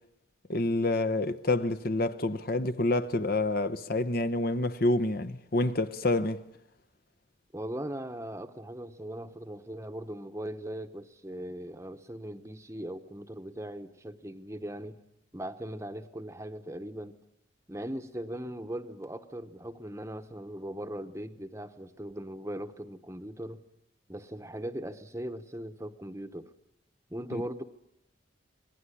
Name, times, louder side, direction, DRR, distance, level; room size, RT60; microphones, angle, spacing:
voice 1, 0.5-6.4 27.3-27.4, left 2 dB, 50° left, 0.9 m, -28 dB
voice 2, 7.5-15.0 15.3-17.2 17.7-23.6 24.1-26.5 27.1-27.6, right 1 dB, 15° right, 1.0 m, -39 dB
25.5 x 20.5 x 9.9 m
head